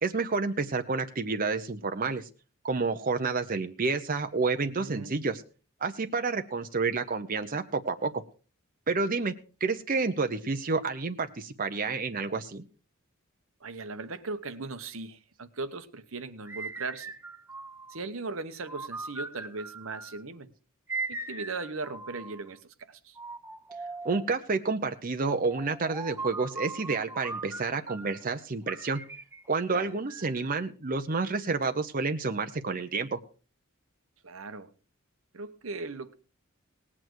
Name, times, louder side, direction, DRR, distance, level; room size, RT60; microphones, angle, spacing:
voice 1, 0.0-2.3 2.6-5.4 5.8-8.1 8.9-9.3 9.6-12.6 24.0-29.0 29.5-33.2, right 4 dB, 40° right, 0.8 m, -29 dB
voice 2, 4.6-5.3 13.6-17.1 17.9-20.5 21.1-23.2 29.7-29.9 34.2-34.7 35.3-36.1, right 3 dB, 70° right, 1.0 m, -38 dB
sound 1, 16.4-18.0 18.6-20.2 20.9-22.5 23.2-24.4 25.5-28.2 28.7-30.5, right 3 dB, 10° right, 0.6 m, -40 dB
18.5 x 8.7 x 4.7 m
head